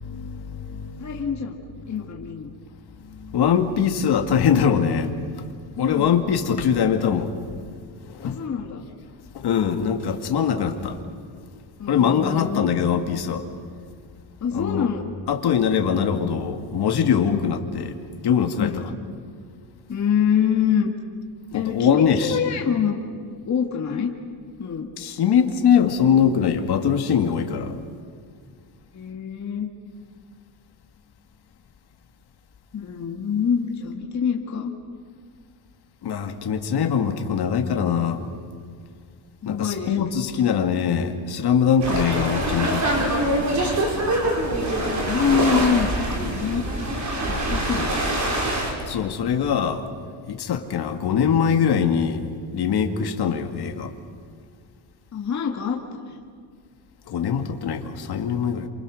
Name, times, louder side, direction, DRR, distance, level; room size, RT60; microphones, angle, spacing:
voice 1, 0.0-1.1 3.1-5.1 5.8-7.3 8.1-8.3 9.3-11.0 11.9-13.5 14.5-14.9 15.3-17.9 18.2-18.7 21.5-22.3 25.0-27.8 36.0-38.2 39.5-43.1 48.9-49.8 50.3-52.2 52.5-53.9 57.1-58.7, left 7 dB, 55° left, 5 dB, 2.3 m, -22 dB
voice 2, 1.0-2.5 5.7-6.1 8.2-8.8 11.8-12.6 14.4-15.1 17.3-17.5 18.6-18.9 19.9-20.9 21.5-23.0 23.4-24.1 24.6-24.9 28.9-29.7 32.7-34.7 39.4-40.0 40.3-40.6 44.7-45.9 46.2-46.6 46.9-47.0 47.3-47.9 55.1-56.2, left 7 dB, 35° left, 0 dB, 2.2 m, -25 dB
sound 1, 41.8-48.7, right 1 dB, 35° right, 5.3 m, -24 dB
28.5 x 27.5 x 6.5 m, 2.1 s
cardioid pair, 140°, 47 cm